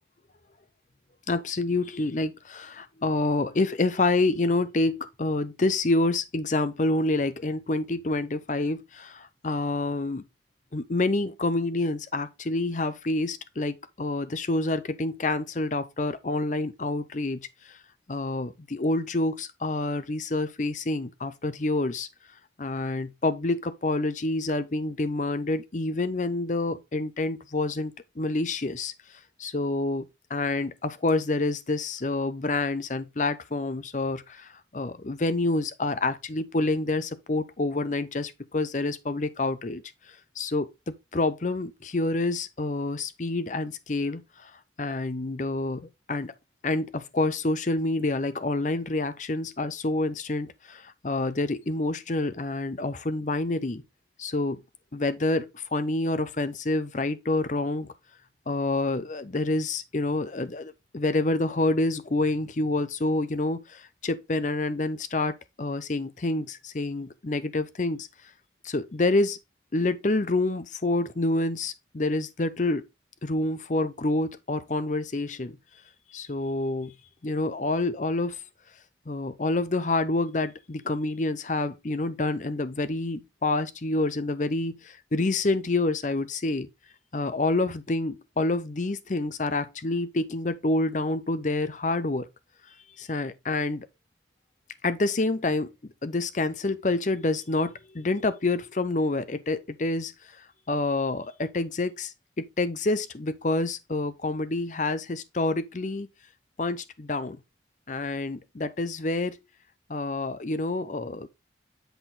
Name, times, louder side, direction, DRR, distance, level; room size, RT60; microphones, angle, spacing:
voice 1, 1.3-10.2 10.7-17.8 18.1-22.1 22.6-28.9 29.4-39.8 40.4-44.5 44.8-45.8 46.1-46.3 46.6-53.8 54.2-54.6 54.9-57.9 58.5-68.1 68.6-69.4 69.7-72.9 73.2-75.6 76.1-76.9 77.2-78.4 79.1-84.8 85.1-86.7 87.1-92.3 93.0-93.9 94.8-95.7 96.0-100.1 100.7-106.1 106.6-107.4 107.9-109.4 109.9-111.3, left 2 dB, 40° left, 0.7 m, -28 dB
8.0 x 4.4 x 3.8 m
head